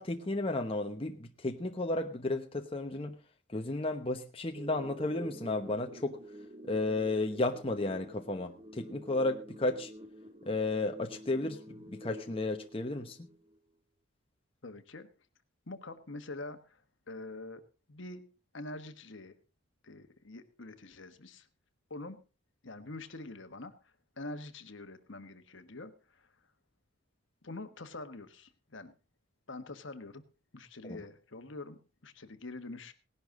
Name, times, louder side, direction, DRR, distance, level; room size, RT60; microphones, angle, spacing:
voice 1, 0.0-3.2 3.5-6.2 6.7-9.9 10.5-13.3 30.8-31.0, left 2 dB, 25° left, 4 dB, 1.0 m, -33 dB
sound 1, 4.6-13.6, equal, 30° right, 1.6 m, -49 dB
voice 2, 14.6-15.1 15.7-16.8 17.1-17.6 17.9-18.2 18.5-19.3 19.8-21.5 21.9-22.2 22.6-26.3 27.4-28.9 29.5-30.2 30.5-32.9, left 2 dB, 60° left, 9 dB, 1.4 m, -45 dB
18.0 x 11.5 x 3.8 m, 0.33 s
head